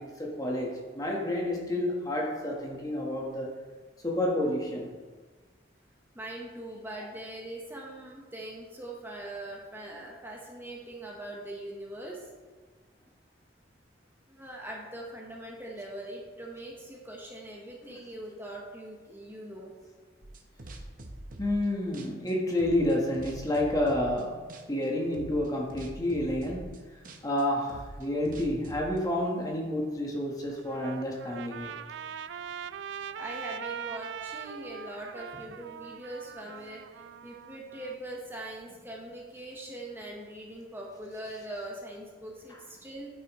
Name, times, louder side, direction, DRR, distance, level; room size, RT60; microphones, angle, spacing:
voice 1, 0.0-3.6 4.0-5.0 17.8-18.0 21.4-31.7, left 1 dB, 20° left, -1 dB, 1.3 m, -30 dB
voice 2, 6.1-12.3 14.3-19.7 33.2-43.1, right 1 dB, 10° right, -2 dB, 1.1 m, -42 dB
sound 1, 20.2-21.7 21.9-24.2 24.5-24.9 25.1-29.0, right 1 dB, 45° right, 0.8 m, -44 dB
Trumpet, 30.5-38.0, right 7 dB, 75° right, 0.3 m, -41 dB
9.3 x 9.0 x 3.1 m, 1.4 s
head